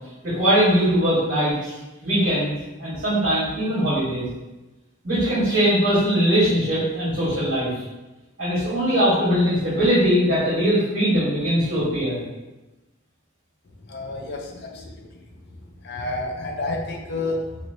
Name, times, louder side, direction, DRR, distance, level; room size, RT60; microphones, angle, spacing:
voice 1, 0.2-1.7 2.0-4.3 5.0-7.7 8.4-12.2, equal, 45° right, -11 dB, 1.2 m, -21 dB
voice 2, 13.9-14.8 15.8-17.4, left 2 dB, 50° left, 1 dB, 0.4 m, -29 dB
3.0 x 2.6 x 2.6 m, 1.1 s
head